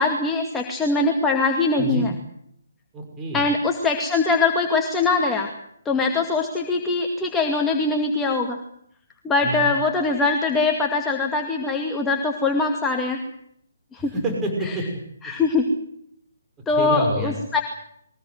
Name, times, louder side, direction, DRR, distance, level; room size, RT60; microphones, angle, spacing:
voice 1, 0.0-2.1 3.3-5.5 5.9-8.6 9.2-13.2 13.9-14.1 15.2-15.7 16.7-17.6, left 3 dB, 10° left, 1 dB, 2.3 m, -22 dB
voice 2, 2.9-3.4 9.4-9.7 14.0-14.9 16.7-17.3, right 1 dB, 15° right, 1 dB, 6.3 m, -28 dB
23.0 x 20.0 x 8.0 m, 0.71 s
figure-of-eight pair, 140°, 0 cm